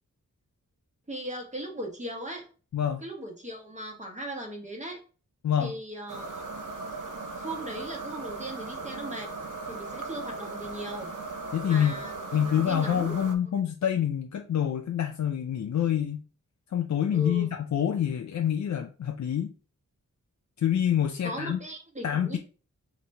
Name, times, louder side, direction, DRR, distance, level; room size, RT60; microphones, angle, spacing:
voice 1, 1.1-2.5 3.0-5.0 5.6-6.4 7.4-9.3 9.7-11.1 11.6-13.2 17.1-17.5 21.2-22.4, right 1 dB, 20° right, 1 dB, 1.2 m, -38 dB
voice 2, 2.7-3.0 5.4-5.7 11.5-11.9 12.3-16.2 16.7-19.5 20.6-21.6 22.0-22.4, left 9 dB, 60° left, 5 dB, 0.4 m, -26 dB
sound 1, 6.1-13.4, right 3 dB, 65° right, 0.7 m, -38 dB
4.1 x 2.9 x 3.2 m, 0.37 s
wide cardioid pair, 85°, 33 cm